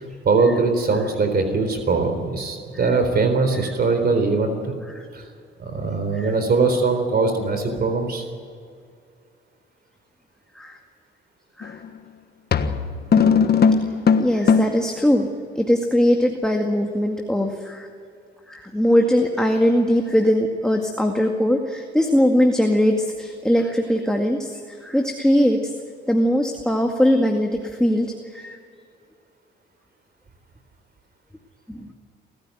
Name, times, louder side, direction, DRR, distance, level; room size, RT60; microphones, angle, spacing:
voice 1, 0.2-4.7 5.1-5.2 5.6-8.2, right 4 dB, 50° right, 7 dB, 4.0 m, -21 dB
sound 1, 11.6-11.9 12.5-14.9, left 6 dB, 55° left, 1.4 m, -18 dB
voice 2, 14.2-15.3 15.5-17.9 18.5-25.7 26.1-28.6 31.7-31.9, equal, 5° left, 2 dB, 2.1 m, -20 dB
27.5 x 14.5 x 9.5 m, 2.3 s
cardioid pair, 90°, 20 cm